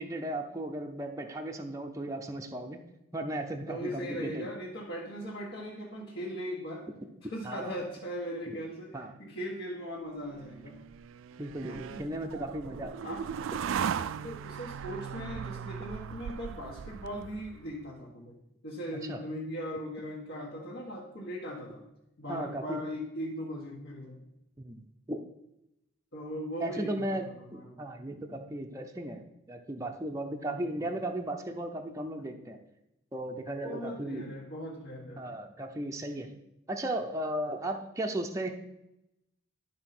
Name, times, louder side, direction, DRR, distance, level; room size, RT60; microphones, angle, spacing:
voice 1, 0.0-2.8 3.1-4.5 7.4-7.8 8.5-8.6 8.9-9.1 11.4-13.1 18.9-19.2 22.3-22.8 24.6-25.2 26.6-27.3 27.5-29.2 29.5-32.6 33.1-34.3 35.2-36.4 36.7-38.5, right 1 dB, 15° right, 2 dB, 0.5 m, -36 dB
voice 2, 3.7-6.9 7.2-10.8 11.7-12.1 13.0-13.2 14.2-18.4 18.6-21.9 22.2-24.2 26.1-27.8 30.5-30.8 33.6-35.2, equal, 60° left, -4 dB, 1.6 m, -39 dB
sound 1, 10.3-17.7, right 7 dB, 65° right, 0.3 m, -38 dB
12.0 x 4.1 x 6.0 m, 0.87 s
head